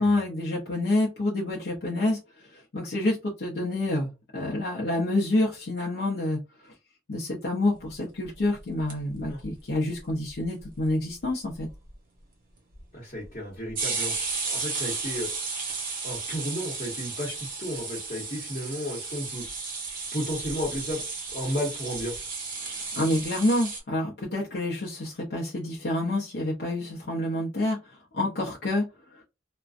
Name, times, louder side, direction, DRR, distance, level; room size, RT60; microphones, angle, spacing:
voice 1, 0.0-6.4 7.1-11.7 23.0-28.8, left 1 dB, 60° left, -3 dB, 0.6 m, -28 dB
sound 1, 8.6-9.4 9.7-9.8 10.0-10.1 10.3-10.9 11.2-11.3 11.6-11.9 12.7-12.8 13.7-23.8, right 4 dB, 50° right, 0.8 m, -34 dB
voice 2, 12.9-14.1 14.5-15.3 16.0-19.4 20.1-21.0 21.3-22.2, equal, 40° left, -4 dB, 0.9 m, -33 dB
2.5 x 2.1 x 2.4 m, 0.27 s
head